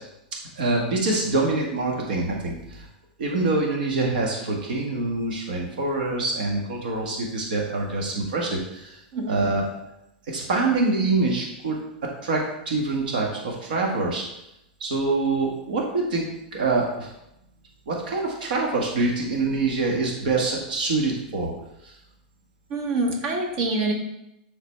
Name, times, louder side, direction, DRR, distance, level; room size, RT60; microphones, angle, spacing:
voice 1, 0.6-2.8 3.2-9.0 9.2-9.7 10.3-11.8 12.2-14.2 14.8-17.1 17.9-21.5 21.8-21.9, right 3 dB, 75° right, -1 dB, 1.5 m, -25 dB
voice 2, 9.1-9.4 22.7-23.9, right 2 dB, 50° right, 1 dB, 1.7 m, -25 dB
10.0 x 4.0 x 3.4 m, 0.84 s
supercardioid pair, 145°, 5 cm